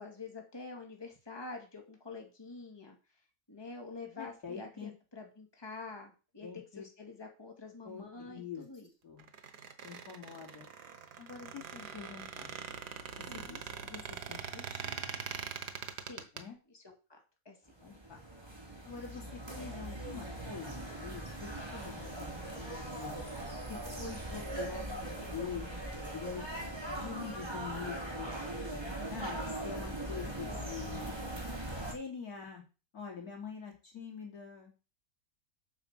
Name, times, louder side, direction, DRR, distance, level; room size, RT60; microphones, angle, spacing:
voice 1, 0.0-3.0 3.5-8.9 11.9-12.0 13.3-13.6 16.0-16.3 16.7-17.2 17.4-17.6 30.4-30.7, left 3 dB, 15° left, 2 dB, 2.6 m, -47 dB
voice 2, 4.2-4.9 6.4-6.9 7.8-8.6 9.0-9.3 9.8-10.7 11.2-12.5 13.2-15.3 16.3-16.6 17.8-18.2 18.9-20.7 21.0-23.2 23.7-26.4 26.9-28.3 29.1-31.1 31.8-32.6 32.9-34.9, left 6 dB, 65° left, 0 dB, 3.7 m, -45 dB
Squeak, 9.2-16.4, right 7 dB, 90° right, 1.8 m, -43 dB
sound 1, 17.7-31.9, right 1 dB, 15° right, 3.0 m, -40 dB
9.0 x 6.0 x 7.5 m, 0.32 s
omnidirectional pair, 1.7 m